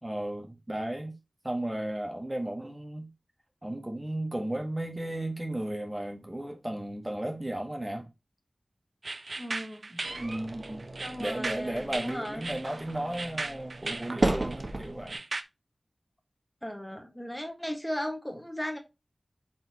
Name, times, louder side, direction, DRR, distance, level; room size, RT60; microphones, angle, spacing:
voice 1, 0.0-1.1 1.4-3.1 3.6-8.1 9.9-10.8 11.2-15.2, right 1 dB, 20° right, 1.3 m, -34 dB
sound 1, 9.0-15.4, right 3 dB, 70° right, 0.6 m, -37 dB
voice 2, 9.4-10.0 11.0-12.4 16.6-18.8, equal, 10° left, 1.5 m, -36 dB
sound 2, 10.0-15.2, right 2 dB, 50° right, 1.1 m, -35 dB
8.6 x 4.2 x 2.8 m
wide cardioid pair, 70°, 0 cm